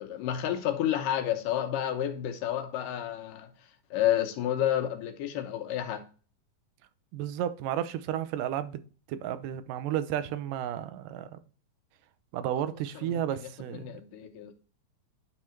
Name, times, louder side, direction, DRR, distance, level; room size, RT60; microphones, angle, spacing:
voice 1, 0.0-3.5 3.9-6.0 13.0-13.2 13.7-14.5, left 11 dB, 85° left, 2.6 m, -30 dB
voice 2, 7.1-8.8 9.1-11.4 12.3-13.9, right 11 dB, 85° right, 2.3 m, -32 dB
9.5 x 3.7 x 4.4 m
omnidirectional pair, 3.7 m